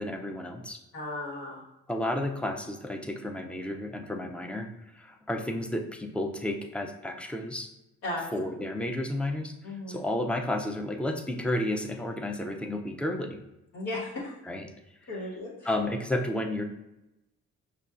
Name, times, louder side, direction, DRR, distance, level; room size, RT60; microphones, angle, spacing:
voice 1, 0.0-0.8 1.9-7.7 8.3-9.5 9.9-13.4 14.5-14.7 15.7-16.6, left 1 dB, 5° left, 3 dB, 0.3 m, -32 dB
voice 2, 0.9-1.6 8.0-8.3 9.6-10.0 13.7-14.4 15.1-15.7, left 2 dB, 75° left, -6 dB, 1.3 m, -35 dB
5.4 x 2.3 x 2.4 m, 0.92 s
cardioid pair, 90°, 30 cm